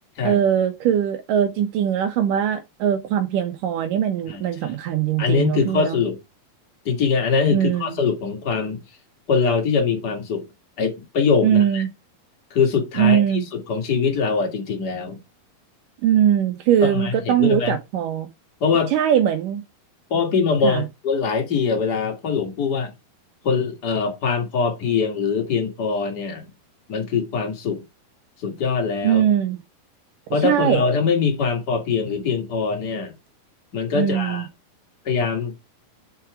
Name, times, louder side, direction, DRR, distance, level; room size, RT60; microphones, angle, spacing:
voice 1, 0.2-6.0 7.5-8.0 11.4-11.9 13.0-13.5 16.0-18.3 18.9-19.6 20.6-20.8 29.0-29.6 30.3-30.8 33.9-34.5, right 10 dB, 75° right, 2.1 m, -21 dB
voice 2, 4.3-4.8 5.2-6.2 6.8-8.8 9.3-10.5 10.8-11.8 12.5-13.2 13.5-15.2 16.8-17.8 18.6-18.9 20.1-22.9 23.4-26.5 26.9-27.8 28.4-29.2 30.3-33.1 33.7-34.5 35.0-35.5, left 5 dB, 40° left, 1.4 m, -23 dB
5.8 x 4.6 x 4.8 m
omnidirectional pair, 4.4 m